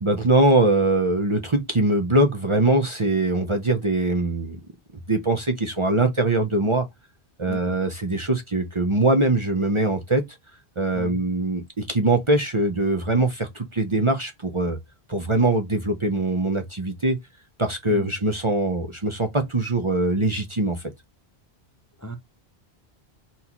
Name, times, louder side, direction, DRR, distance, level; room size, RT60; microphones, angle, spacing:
voice 1, 0.0-4.6 5.1-6.8 7.4-10.2 10.8-14.8 15.1-17.2 17.6-20.8, right 2 dB, 35° right, 0.7 m, -22 dB
voice 2, 7.5-7.8 10.9-11.2 17.9-18.1 22.0-22.2, left 1 dB, 20° left, 0.6 m, -36 dB
4.3 x 4.0 x 2.9 m
omnidirectional pair, 1.1 m